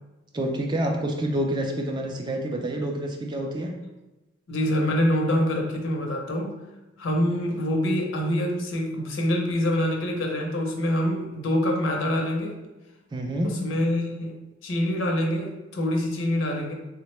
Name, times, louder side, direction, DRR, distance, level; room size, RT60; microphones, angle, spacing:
voice 1, 0.3-3.7 13.1-13.6, right 1 dB, 20° right, 2 dB, 0.3 m, -28 dB
voice 2, 4.5-6.6 7.0-12.5 13.4-14.3 14.6-16.7, left 1 dB, 70° left, 1 dB, 0.6 m, -25 dB
3.5 x 2.1 x 3.0 m, 1.1 s
head